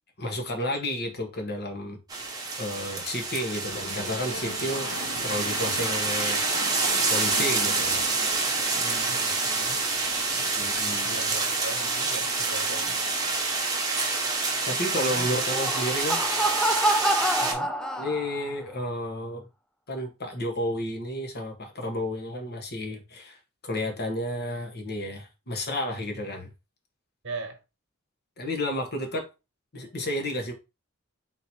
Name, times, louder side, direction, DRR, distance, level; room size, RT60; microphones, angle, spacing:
voice 1, 0.2-4.9 5.2-6.4 7.1-8.0 10.5-11.2 14.6-16.2 18.0-19.4 19.9-23.4 23.6-26.5 28.4-29.3 29.7-30.5, left 1 dB, 50° left, 1.2 m, -31 dB
sound 1, 2.1-17.5, right 3 dB, 20° right, 1.0 m, -27 dB
sound 2, 3.5-13.4, left 3 dB, 75° left, 0.7 m, -41 dB
voice 2, 5.2-5.5 8.7-9.8 11.0-13.0 15.0-15.3 17.4-17.7 27.2-27.6, right 2 dB, 60° right, 1.2 m, -40 dB
Laughter, 15.4-18.5, right 1 dB, 5° left, 0.4 m, -27 dB
4.0 x 2.7 x 4.4 m
head